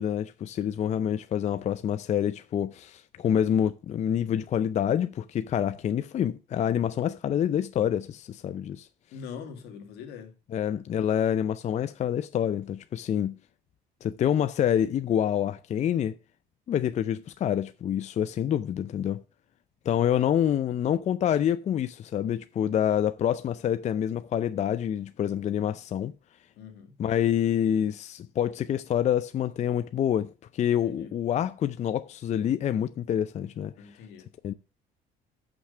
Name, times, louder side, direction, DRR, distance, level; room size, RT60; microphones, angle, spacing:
voice 1, 0.0-8.9 10.5-13.3 14.0-16.1 16.7-19.2 19.9-26.1 27.0-33.7 34.4-34.5, left 9 dB, 45° left, 0.5 m, -27 dB
voice 2, 9.1-10.3 26.6-26.9 30.8-31.1 33.8-34.3, left 6 dB, 85° left, 1.8 m, -43 dB
6.4 x 6.0 x 6.5 m
cardioid pair, 110°, 17 cm